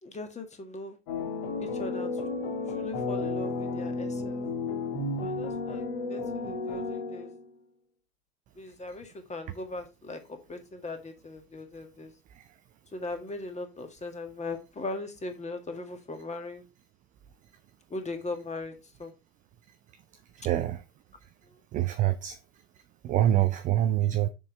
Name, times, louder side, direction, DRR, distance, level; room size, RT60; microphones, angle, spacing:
voice 1, 0.0-1.0 1.6-2.2 2.7-4.4 5.2-7.3 8.5-12.1 12.9-16.6 17.9-19.1 21.4-21.6, left 2 dB, 15° left, 1.7 m, -39 dB
sound 1, 1.1-7.5, left 3 dB, 45° left, 2.6 m, -32 dB
voice 2, 20.3-20.8 21.2-21.3 21.7-22.4 23.0-24.3, right 12 dB, 20° right, 0.4 m, -26 dB
6.9 x 5.3 x 4.3 m
figure-of-eight pair, 85°, 45 cm